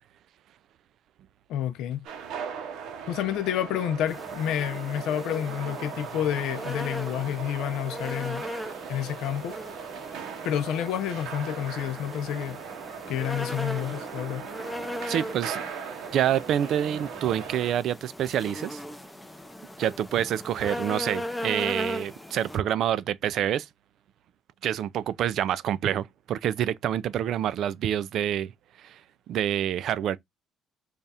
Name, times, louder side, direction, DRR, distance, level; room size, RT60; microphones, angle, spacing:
voice 1, 1.5-2.0 3.1-8.4 8.9-9.6 10.4-12.6 13.1-14.5, left 10 dB, 75° left, 0.5 m, -29 dB
sound 1, 2.0-17.7, right 7 dB, 75° right, 0.8 m, -39 dB
sound 2, 4.1-22.6, equal, 5° left, 0.5 m, -38 dB
voice 2, 15.1-15.6 16.1-18.8 19.8-23.7 24.6-28.5 28.8-29.0 29.3-30.2, right 10 dB, 55° right, 0.3 m, -27 dB
3.4 x 2.3 x 4.1 m
cardioid pair, 140°, 0 cm